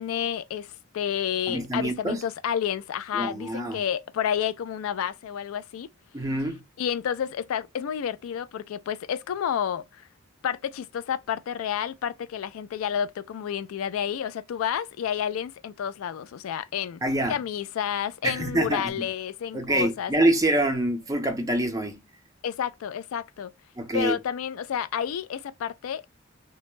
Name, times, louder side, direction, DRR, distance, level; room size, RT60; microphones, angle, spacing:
voice 1, 0.0-5.9 6.8-10.0 10.4-17.0 17.3-20.1 22.4-23.5 23.9-26.1, left 8 dB, 85° left, 0.3 m, -30 dB
voice 2, 1.5-2.2 3.1-3.8 6.1-6.6 17.0-17.4 18.2-19.1 19.5-22.0 23.8-24.2, right 1 dB, 15° right, 0.6 m, -26 dB
2.2 x 2.0 x 3.0 m
head